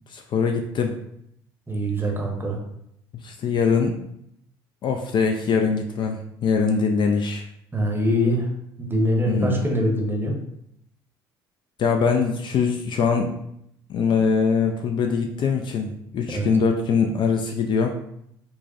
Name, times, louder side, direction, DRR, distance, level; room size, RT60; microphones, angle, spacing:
voice 1, 0.1-0.9 3.2-3.9 4.8-7.5 9.3-9.6 11.8-13.3 13.9-17.9, left 5 dB, 40° left, 4 dB, 0.4 m, -22 dB
voice 2, 1.7-2.6 7.7-8.5 8.8-10.3 16.3-16.5, equal, 15° right, 0 dB, 0.8 m, -23 dB
4.5 x 2.1 x 2.5 m, 0.76 s
figure-of-eight pair, 55°, 12 cm